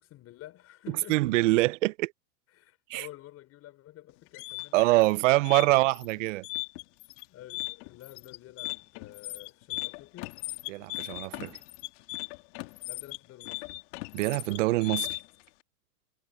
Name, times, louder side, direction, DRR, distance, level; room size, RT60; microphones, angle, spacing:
voice 1, 0.0-1.5 2.5-5.1 5.6-5.9 7.3-10.4 12.9-13.8, left 14 dB, 30° left, 4.8 m, -50 dB
voice 2, 1.1-2.1 2.9-3.1 4.7-6.5 10.7-11.6 14.1-15.2, right 20 dB, 55° right, 0.5 m, -25 dB
sound 1, 4.1-15.4, left 26 dB, 50° left, 2.2 m, -38 dB
hypercardioid pair, 135°, 46 cm